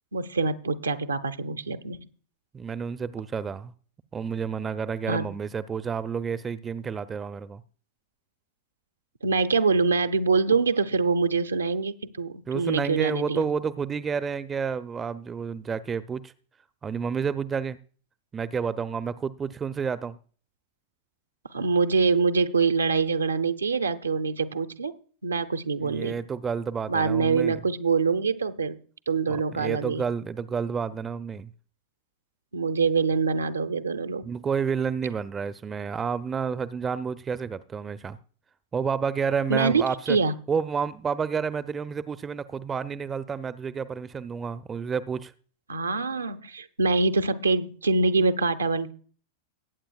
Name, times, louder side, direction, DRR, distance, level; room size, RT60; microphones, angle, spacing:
voice 1, 0.1-2.1 5.1-5.3 9.2-13.4 21.5-24.9 25.2-26.2 26.9-28.8 29.1-30.0 32.5-34.3 39.5-40.3 45.7-48.9, right 4 dB, 75° right, 0.8 m, -25 dB
voice 2, 2.5-3.7 4.1-7.6 12.5-16.3 16.8-17.8 18.3-20.2 25.8-27.6 29.3-31.5 34.2-38.2 38.7-40.2 40.5-45.3, right 6 dB, 20° right, 0.6 m, -30 dB
20.0 x 8.9 x 2.4 m
figure-of-eight pair, 90°, 0 cm